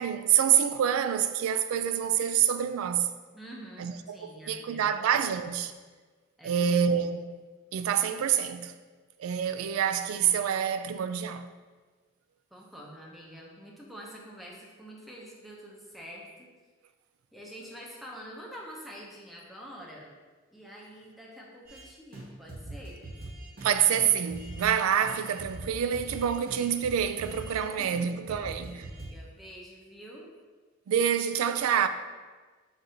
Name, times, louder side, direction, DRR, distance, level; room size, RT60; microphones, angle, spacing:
voice 1, 0.0-3.1 3.8-5.7 6.4-7.4 7.7-8.7 9.2-11.5 23.6-28.9 30.9-31.9, right 8 dB, 90° right, 0.3 m, -27 dB
voice 2, 3.3-5.2 6.4-6.7 12.5-16.5 17.3-20.1 20.5-23.0 27.5-28.0 28.3-30.3, equal, ahead, 0.7 m, -47 dB
sound 1, 21.7-21.8 22.1-22.2 22.5-24.7 25.0-27.6 27.9-28.0 28.3-29.1, right 1 dB, 45° right, 1.0 m, -42 dB
4.2 x 2.6 x 4.8 m
head